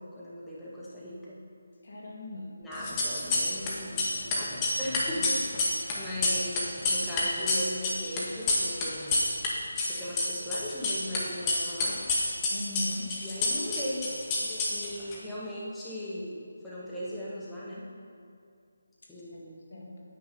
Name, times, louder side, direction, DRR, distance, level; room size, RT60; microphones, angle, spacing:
voice 1, 0.0-1.4 2.6-9.2 9.9-12.0 13.2-14.0 14.7-17.9 19.1-19.6, equal, 5° left, -9 dB, 1.8 m, -38 dB
voice 2, 1.8-2.6 12.5-13.2 19.3-20.0, left 1 dB, 55° left, -2 dB, 2.0 m, -39 dB
sound 1, 2.8-3.7 4.0-9.5 9.8-11.2 11.5-15.2, left 2 dB, 20° left, 1.5 m, -28 dB
9.4 x 8.0 x 5.5 m, 2.4 s
figure-of-eight pair, 155°, 0 cm